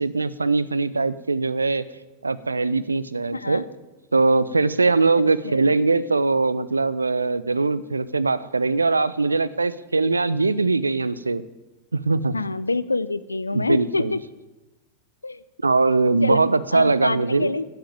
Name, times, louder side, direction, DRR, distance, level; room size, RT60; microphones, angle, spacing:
voice 1, 0.0-1.8 2.2-3.6 4.1-11.4 11.9-12.3 13.5-14.1 15.6-17.5, right 3 dB, 80° right, 17 dB, 0.5 m, -21 dB
voice 2, 12.3-14.2 15.2-15.4 16.2-17.7, left 3 dB, 80° left, 16 dB, 0.4 m, -26 dB
8.5 x 8.1 x 9.0 m, 1.1 s
figure-of-eight pair, 90°, 0 cm